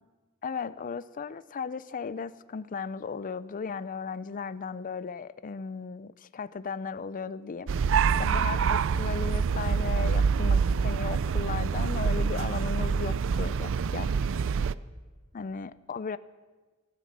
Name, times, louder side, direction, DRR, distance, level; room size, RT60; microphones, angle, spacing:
voice 1, 0.4-7.7 8.2-14.1 15.3-16.2, left 5 dB, 40° left, 15 dB, 0.4 m, -36 dB
sound 1, 7.7-14.7, right 6 dB, 65° right, 0.4 m, -26 dB
14.5 x 13.5 x 7.4 m, 1.3 s
head